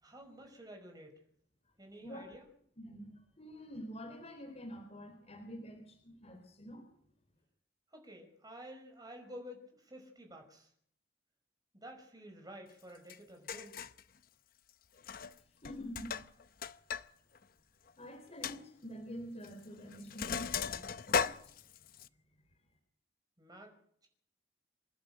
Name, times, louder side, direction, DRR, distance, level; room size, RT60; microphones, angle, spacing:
voice 1, 0.0-1.2 1.8-2.5 7.9-10.7 11.7-13.7 23.4-23.7, equal, 20° right, 3 dB, 5.3 m, -51 dB
voice 2, 2.8-3.1 3.4-6.8 15.6-16.2 18.0-20.8 21.1-21.5, equal, 35° left, 2 dB, 4.0 m, -47 dB
Sink (filling or washing), 13.1-13.2 13.5-14.0 15.0-15.4 15.6-17.1 17.4-17.5 17.9-18.0 18.4-18.6 19.4-19.6 19.9-22.1, left 6 dB, 55° left, 0.7 m, -36 dB
27.5 x 11.5 x 9.0 m, 0.65 s
head